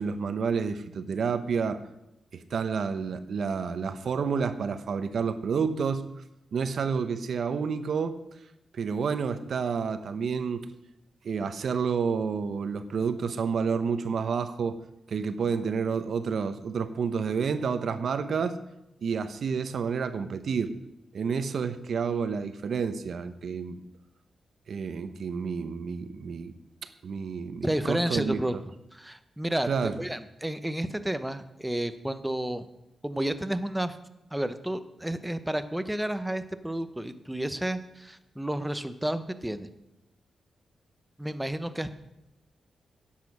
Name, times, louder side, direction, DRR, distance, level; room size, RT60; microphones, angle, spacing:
voice 1, 0.0-1.8 2.3-6.1 6.5-8.2 8.7-10.7 11.2-14.8 15.1-18.6 19.0-20.7 21.1-23.8 24.7-26.5 27.0-28.4 29.7-29.9, right 6 dB, 65° right, 10 dB, 0.8 m, -29 dB
voice 2, 27.6-28.6 28.9-29.7 30.0-32.6 33.0-34.0 34.3-39.7 41.2-41.9, right 1 dB, 5° right, 10 dB, 0.8 m, -31 dB
10.5 x 7.5 x 6.1 m, 0.87 s
cardioid pair, 90°, 0 cm